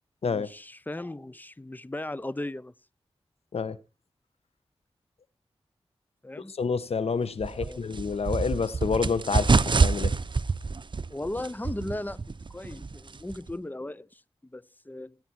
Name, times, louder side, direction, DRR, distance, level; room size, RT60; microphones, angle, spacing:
voice 1, 0.2-2.7 6.2-6.5 7.5-7.8 11.1-12.2 12.5-14.2 14.5-15.2, left 1 dB, 15° left, 0.9 m, -37 dB
voice 2, 6.5-10.1, left 5 dB, 80° left, 1.2 m, -28 dB
sound 1, 7.4-13.5, right 4 dB, 50° right, 0.9 m, -27 dB
19.5 x 9.7 x 4.6 m
cardioid pair, 45°, 10 cm